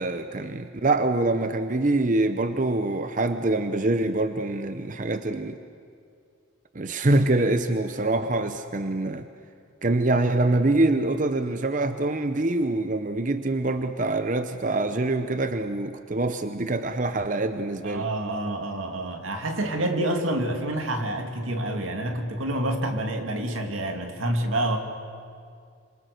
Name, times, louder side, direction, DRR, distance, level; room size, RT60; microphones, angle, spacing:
voice 1, 0.0-5.6 6.7-9.3 9.8-18.1, right 2 dB, 40° right, 9 dB, 0.8 m, -25 dB
voice 2, 17.8-24.8, right 1 dB, 90° right, 5 dB, 2.4 m, -28 dB
27.0 x 26.0 x 6.7 m, 2.3 s
head